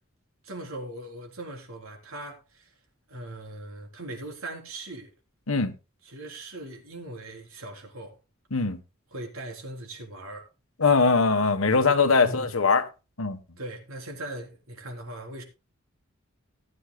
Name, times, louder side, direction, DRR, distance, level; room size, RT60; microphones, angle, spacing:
voice 1, 0.4-2.7 3.1-5.1 6.0-8.2 9.1-10.5 12.2-12.6 13.6-15.4, right 1 dB, 80° right, 3.8 m, -40 dB
voice 2, 10.8-12.9 13.2-13.4, left 4 dB, 75° left, 1.3 m, -21 dB
18.5 x 9.8 x 2.2 m
head